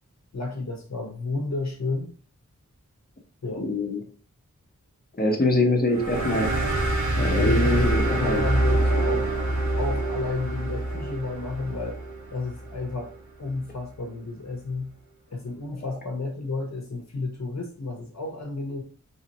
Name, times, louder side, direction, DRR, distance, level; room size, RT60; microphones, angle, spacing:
voice 1, 0.3-2.1 3.4-3.7 7.4-9.3 9.8-12.0 12.3-14.9 15.3-18.8, left 3 dB, 60° left, 1 dB, 0.8 m, -31 dB
voice 2, 3.6-4.0 5.2-6.5 7.2-8.4, left 2 dB, 30° left, 1 dB, 0.9 m, -24 dB
sound 1, 5.9-13.0, right 1 dB, 65° right, 1.1 m, -25 dB
4.1 x 3.0 x 2.9 m, 0.43 s
wide cardioid pair, 65°, 31 cm